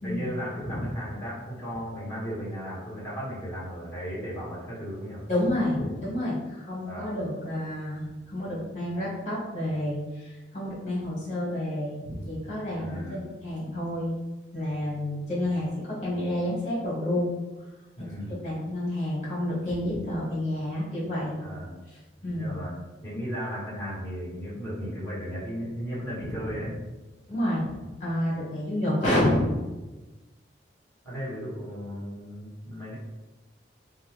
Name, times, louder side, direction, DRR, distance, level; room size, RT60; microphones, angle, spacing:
voice 1, 0.0-5.2 6.8-7.1 12.7-13.2 18.0-18.4 21.4-21.7 22.3-22.7 23.0-26.8 31.0-32.9, equal, 10° left, -9 dB, 1.2 m, -35 dB
voice 2, 5.3-14.1 14.5-17.3 18.4-21.4 21.9-22.6 26.2-26.7 27.3-29.5, left 1 dB, 40° left, -7 dB, 1.2 m, -29 dB
2.5 x 2.3 x 3.2 m, 1.1 s
head